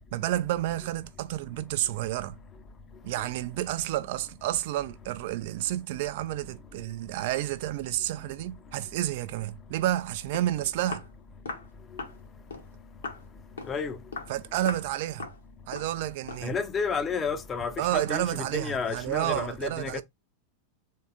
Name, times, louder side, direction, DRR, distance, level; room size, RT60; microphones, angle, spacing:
voice 1, 0.1-2.4 3.0-11.0 14.3-15.3 15.7-16.6 17.8-20.0, right 14 dB, 50° right, 0.5 m, -30 dB
Walk footsteps, 10.0-10.1 10.3-10.5 10.9-11.1 11.5-11.7 12.0-12.2 12.5-12.7 13.0-13.2 13.6-13.8 14.1-14.3 14.7-14.9 15.2-15.4 15.7-15.9 16.3-16.5, left 4 dB, 70° left, 1.4 m, -38 dB
voice 2, 13.7-14.0 16.4-18.2 18.5-20.0, left 5 dB, 20° left, 0.7 m, -31 dB
3.7 x 3.4 x 4.1 m
figure-of-eight pair, 90°, 0 cm